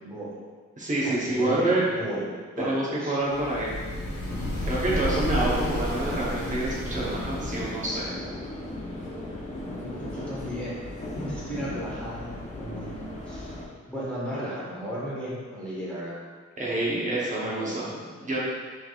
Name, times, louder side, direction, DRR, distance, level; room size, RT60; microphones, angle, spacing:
voice 1, 0.0-0.3 1.0-3.2 4.5-5.1 9.7-10.7 11.1-13.0 13.3-13.5 13.9-16.2 17.4-17.8, right 1 dB, 5° left, -9 dB, 1.3 m, -35 dB
voice 2, 0.8-1.8 2.6-3.7 4.6-8.1 16.6-18.4, right 2 dB, 25° right, -6 dB, 0.9 m, -27 dB
sound 1, 3.3-8.0, left 1 dB, 85° left, 1.0 m, -32 dB
sound 2, 4.3-13.7, left 1 dB, 25° left, 0.8 m, -37 dB
5.8 x 3.4 x 2.4 m, 1.5 s
wide cardioid pair, 135°, 30 cm